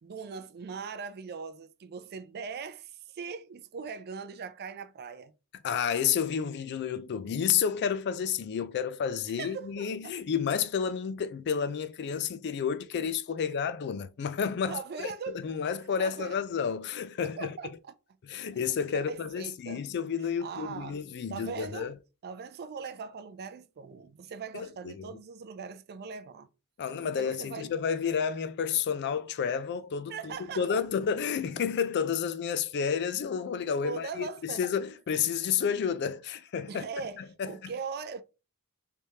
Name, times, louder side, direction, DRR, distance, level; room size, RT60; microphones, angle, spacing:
voice 1, 0.0-5.3 9.4-10.2 13.5-13.6 14.7-15.4 15.8-16.4 17.4-17.9 18.3-18.4 18.9-19.9 20.4-21.0 21.3-21.9 22.2-26.5 27.0-27.7 30.1-30.8 33.8-34.6 36.7-38.2, right 5 dB, 45° right, 0.4 m, -40 dB
voice 2, 5.6-14.8 15.3-17.5 18.3-21.9 24.5-25.1 26.8-36.8 37.2-37.7, left 7 dB, 50° left, 0.3 m, -30 dB
3.4 x 3.1 x 2.7 m
head